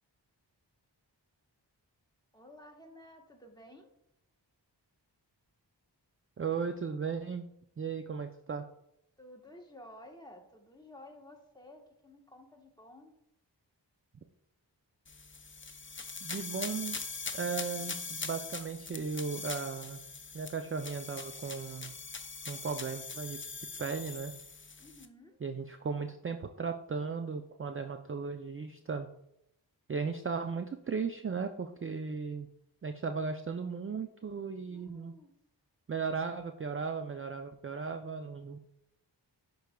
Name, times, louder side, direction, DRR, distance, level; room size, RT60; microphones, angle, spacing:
voice 1, 2.3-3.9 9.2-13.1 24.8-25.4 34.6-35.3, left 1 dB, 10° left, 2 dB, 1.1 m, -53 dB
voice 2, 6.4-7.5 7.8-8.6 16.2-17.0 17.3-20.0 20.3-21.9 22.5-23.4 23.8-24.3 25.4-29.1 29.9-32.5 32.8-35.1 35.9-38.6, right 5 dB, 30° right, 7 dB, 0.4 m, -36 dB
sound 1, 15.1-25.1, left 4 dB, 30° left, 0.6 m, -42 dB
10.0 x 4.7 x 2.3 m, 0.78 s
wide cardioid pair, 50°, 44 cm